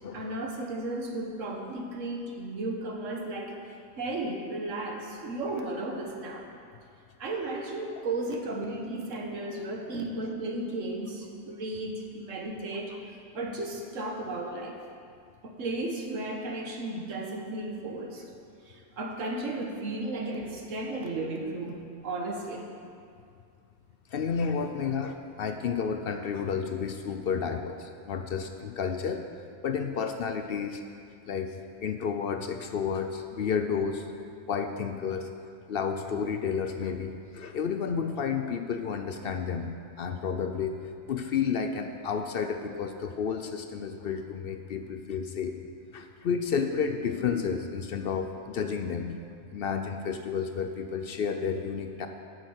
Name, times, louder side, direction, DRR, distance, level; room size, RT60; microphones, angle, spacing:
voice 1, 0.1-3.6 4.0-6.5 7.2-13.0 13.3-14.8 15.4-18.2 18.7-22.7, right 2 dB, 85° right, 2 dB, 1.5 m, -34 dB
voice 2, 24.1-29.2 29.6-30.8 31.3-31.5 31.8-34.1 34.5-35.3 35.7-40.7 41.1-45.5 45.9-49.1 49.5-52.1, left 6 dB, 60° left, 6 dB, 0.7 m, -31 dB
8.6 x 6.4 x 7.9 m, 2.3 s
omnidirectional pair, 1.3 m